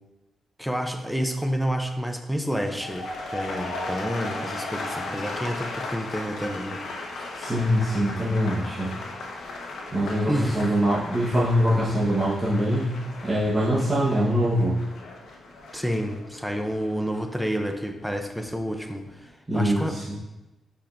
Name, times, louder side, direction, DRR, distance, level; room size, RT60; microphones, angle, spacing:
voice 1, 0.6-6.8 7.1-7.2 10.3-10.7 15.7-20.0, equal, ahead, 4 dB, 0.6 m, -29 dB
sound 1, 2.5-18.6 18.9-19.3, left 2 dB, 85° left, 1.0 m, -37 dB
voice 2, 7.3-8.9 9.9-12.9 13.2-14.8 19.5-20.2, equal, 20° right, -8 dB, 1.2 m, -23 dB
8.6 x 5.1 x 2.6 m, 1.0 s
wide cardioid pair, 125°, 0 cm